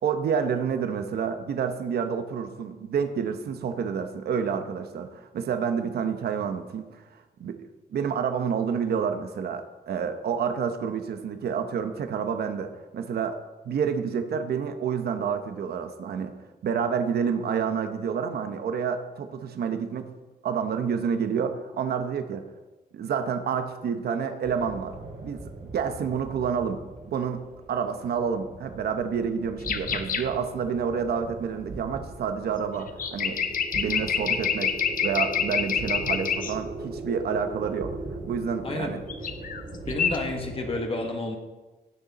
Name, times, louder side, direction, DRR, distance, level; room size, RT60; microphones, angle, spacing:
voice 1, 0.0-7.6 7.9-16.3 16.6-20.1 20.4-22.5 22.9-24.9 25.2-27.4 27.7-33.4 33.7-34.7 35.0-38.0 38.2-39.0, right 6 dB, 65° right, 8 dB, 0.9 m, -29 dB
sound 1, 24.4-40.8, right 2 dB, 45° right, 2.4 m, -39 dB
sound 2, 29.6-30.3 32.9-36.5 39.1-39.6 39.9-40.2, left 7 dB, 55° left, 0.8 m, -27 dB
voice 2, 38.6-39.0 39.8-41.4, left 2 dB, 30° left, 3 dB, 1.4 m, -30 dB
16.0 x 6.6 x 4.2 m, 1.2 s
wide cardioid pair, 140°, 17 cm